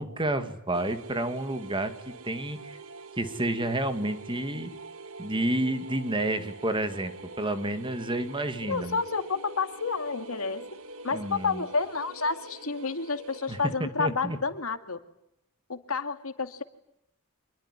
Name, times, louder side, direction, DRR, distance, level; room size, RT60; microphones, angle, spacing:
voice 1, 0.0-2.8 3.2-4.7 5.2-7.1 7.4-9.0 11.1-11.6 13.5-14.4, right 1 dB, 20° right, 9 dB, 2.2 m, -30 dB
sound 1, 0.7-13.8, right 3 dB, 65° right, 1.9 m, -45 dB
voice 2, 8.7-10.7 11.0-15.0 15.7-16.6, left 4 dB, 70° left, 8 dB, 2.3 m, -30 dB
27.0 x 21.5 x 9.9 m, 0.80 s
head